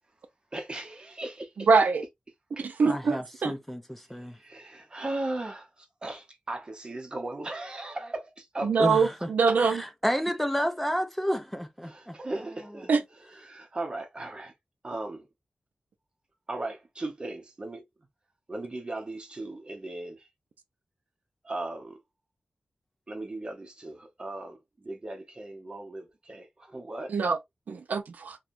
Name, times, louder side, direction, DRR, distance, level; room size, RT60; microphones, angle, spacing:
voice 1, 0.5-1.5 2.6-2.9 4.4-8.8 11.8-12.9 13.4-14.5 14.8-15.3 16.5-17.8 18.5-20.2 21.4-22.0 23.1-26.0 26.3-27.1, right 2 dB, 35° right, 0.8 m, -37 dB
voice 2, 1.7-2.0 2.6-3.5 8.6-9.8 12.9-13.0 27.1-27.4 27.7-28.4, right 4 dB, 85° right, 0.4 m, -24 dB
voice 3, 2.9-4.4 8.8-9.3 9.6-12.2, equal, 5° left, 0.5 m, -31 dB
2.8 x 2.3 x 2.5 m
wide cardioid pair, 95°, 3 cm